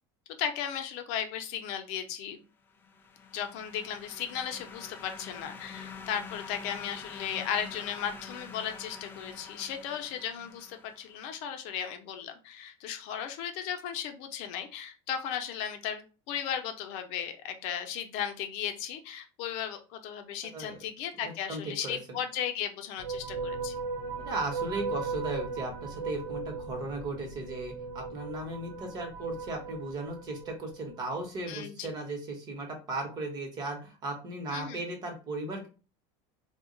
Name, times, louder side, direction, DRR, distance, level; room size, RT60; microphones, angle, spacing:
voice 1, 0.4-2.4 3.3-23.8 31.5-31.9 34.5-34.8, left 9 dB, 60° left, 7 dB, 0.6 m, -36 dB
sound 1, 2.7-11.3, left 5 dB, 15° left, 0.3 m, -46 dB
voice 2, 21.2-22.2 24.2-35.7, right 2 dB, 30° right, 2 dB, 0.9 m, -36 dB
sound 2, 23.0-31.0, right 4 dB, 65° right, 0.4 m, -37 dB
2.3 x 2.1 x 3.7 m, 0.34 s
cardioid pair, 170°, 13 cm